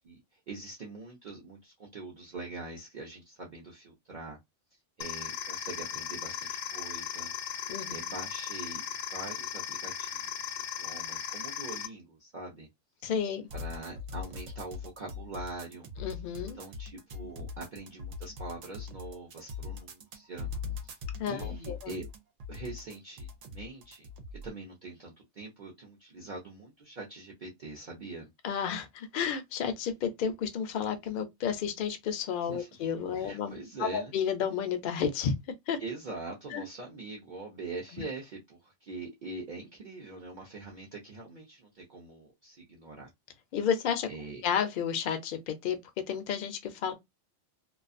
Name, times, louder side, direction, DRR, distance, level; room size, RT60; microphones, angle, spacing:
voice 1, 0.5-4.4 5.0-8.8 9.1-12.7 13.5-15.9 16.3-20.5 20.8-21.0 21.2-22.1 22.5-24.1 24.4-28.2 32.4-32.7 33.2-34.1 35.8-43.1 44.1-44.4, right 3 dB, 50° right, 0.6 m, -43 dB
sound 1, 5.0-11.9, left 9 dB, 80° left, 0.9 m, -37 dB
voice 2, 13.0-13.5 16.0-16.6 21.2-21.9 28.4-35.3 35.7-35.8 36.5-36.6 37.9-38.0 43.5-44.1 44.4-45.8 46.1-46.9, left 7 dB, 60° left, 0.6 m, -31 dB
sound 2, 13.5-24.5, left 4 dB, 80° right, 0.9 m, -41 dB
2.3 x 2.3 x 2.5 m
omnidirectional pair, 1.3 m